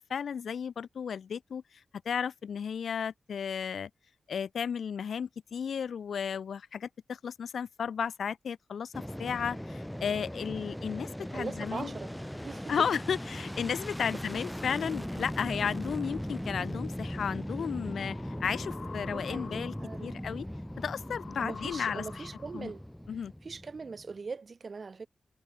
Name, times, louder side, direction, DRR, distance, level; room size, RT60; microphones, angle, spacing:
voice 1, 0.0-1.6 2.0-3.9 4.3-11.9 12.7-19.7 20.0-20.5 20.8-22.3 22.5-22.7 23.1-23.3, left 7 dB, 85° left, 1.1 m, -34 dB
Fixed-wing aircraft airplane, 8.9-24.1, equal, 5° left, 1.9 m, -39 dB
voice 2, 11.3-12.7 19.0-20.3 21.4-22.8 23.4-25.1, right 4 dB, 40° right, 7.4 m, -41 dB
sound 1, 17.1-22.8, left 5 dB, 55° left, 4.0 m, -48 dB
wide cardioid pair, 155°, 0 cm